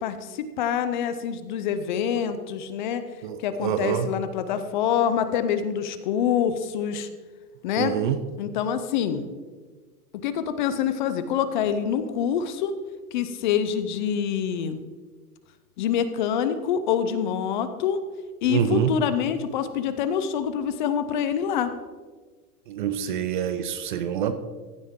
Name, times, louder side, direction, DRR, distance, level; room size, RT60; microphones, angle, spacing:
voice 1, 0.0-3.0 3.4-7.1 7.6-7.9 8.4-9.2 10.2-12.7 13.1-14.8 15.8-18.0 18.4-21.7, left 8 dB, 30° left, 11 dB, 0.6 m, -26 dB
voice 2, 3.2-4.1 7.8-8.2 18.4-18.9 22.7-24.3, right 9 dB, 35° right, 11 dB, 0.5 m, -26 dB
15.0 x 9.4 x 3.7 m, 1.4 s
hypercardioid pair, 155°, 45 cm